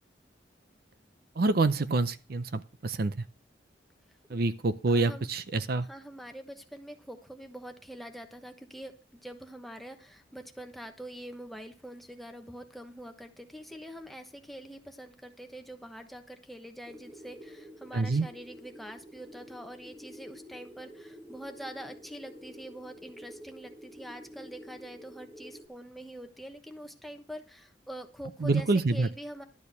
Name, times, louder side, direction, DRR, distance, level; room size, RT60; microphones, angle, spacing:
voice 1, 1.4-3.2 4.3-5.9 17.9-18.3 28.4-29.1, right 3 dB, 55° right, 0.6 m, -27 dB
voice 2, 4.9-5.3 5.8-29.4, equal, ahead, 1.0 m, -45 dB
sound 1, 16.9-25.7, equal, 15° right, 1.4 m, -49 dB
12.0 x 4.4 x 8.3 m
head